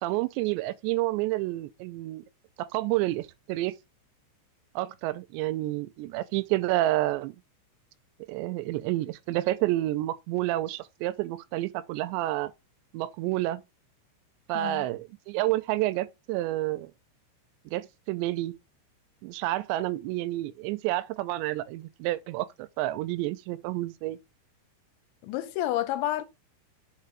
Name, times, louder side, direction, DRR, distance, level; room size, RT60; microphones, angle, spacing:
voice 1, 0.0-2.2 2.6-3.7 4.8-7.4 8.3-12.5 12.9-13.6 14.5-16.9 17.7-18.6 19.2-24.2, right 16 dB, 85° right, 2.6 m, -29 dB
voice 2, 14.5-14.9 25.2-26.2, left 13 dB, 85° left, 2.9 m, -29 dB
6.7 x 3.3 x 5.9 m
omnidirectional pair, 5.5 m